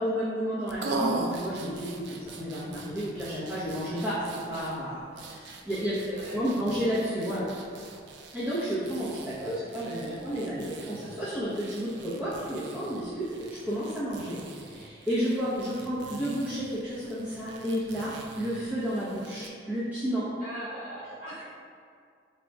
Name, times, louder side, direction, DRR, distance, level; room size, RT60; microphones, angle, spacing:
voice 1, 0.0-6.0 6.3-7.4 8.3-14.4 14.6-20.3, equal, 10° right, -13 dB, 0.7 m, -31 dB
sound 1, 0.7-19.5, right 3 dB, 65° right, 0.4 m, -41 dB
voice 2, 5.7-6.4 20.4-21.4, equal, 30° right, -10 dB, 1.5 m, -39 dB
4.0 x 2.3 x 4.5 m, 2.3 s
head